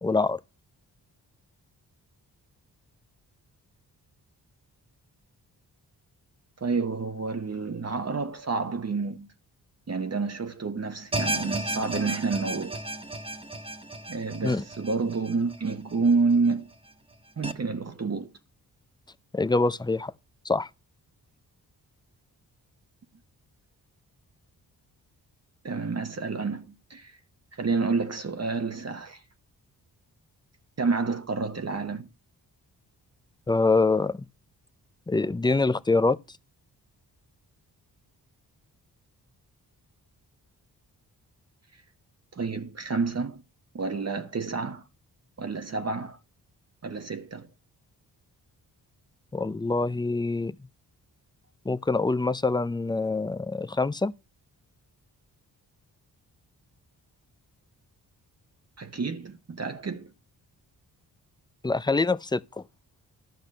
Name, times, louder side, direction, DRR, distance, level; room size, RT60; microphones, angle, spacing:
voice 1, 0.0-0.4 14.4-14.6 19.3-20.1 20.4-20.7 33.5-34.2 35.1-36.2 49.3-50.5 51.7-54.1 61.6-62.4, left 3 dB, 10° left, 0.5 m, -25 dB
voice 2, 6.6-9.3 9.9-12.8 14.1-16.7 17.4-18.3 25.6-27.2 27.5-29.2 30.8-32.1 42.3-43.4 43.7-44.8 45.4-46.2 46.8-47.5 58.8-60.1, right 4 dB, 40° right, 1.1 m, -29 dB
sound 1, 11.1-16.3 16.7-16.8 17.4-17.5, right 2 dB, 15° right, 1.5 m, -34 dB
12.0 x 5.8 x 5.4 m
supercardioid pair, 50°, 41 cm